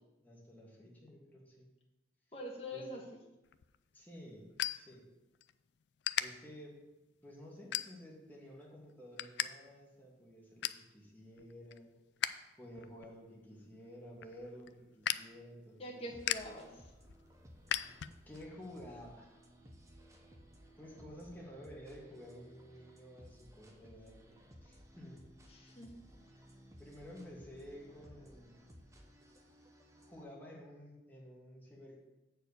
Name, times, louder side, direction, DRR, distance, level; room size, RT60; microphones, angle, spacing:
voice 1, 0.2-1.7 2.7-2.8 3.9-5.1 6.2-6.8 7.2-11.9 12.6-16.0 18.3-19.3 20.8-25.3 26.8-28.6 30.1-32.0, equal, 10° left, -4 dB, 1.9 m, -52 dB
voice 2, 2.3-3.0 15.8-16.9 25.5-25.9, left 1 dB, 35° left, -1 dB, 1.5 m, -44 dB
sound 1, 3.4-5.5 6.0-6.2 6.8-7.0 7.7-8.3 8.7-9.5 9.8-9.9 10.2-10.9 11.3-12.4 12.7-18.5, left 11 dB, 70° left, 0.3 m, -39 dB
sound 2, 16.1-30.2, equal, 15° right, 0.8 m, -59 dB
7.8 x 4.4 x 6.9 m, 1.0 s
head